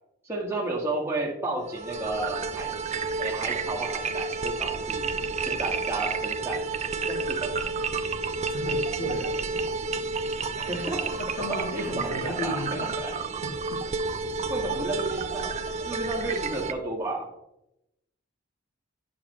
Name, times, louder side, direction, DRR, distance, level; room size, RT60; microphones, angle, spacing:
voice 1, 0.2-2.7 3.2-5.0 5.4-6.6 7.0-7.5 10.6-11.2 11.5-12.6 13.0-13.1 14.5-17.3, right 2 dB, 15° right, -4 dB, 1.6 m, -32 dB
sound 1, 1.7-16.7, right 4 dB, 30° right, 0.4 m, -30 dB
voice 2, 8.4-9.4 11.2-13.1 13.4-13.9, left 1 dB, 70° left, 4 dB, 1.1 m, -34 dB
8.5 x 6.5 x 3.1 m, 0.86 s
head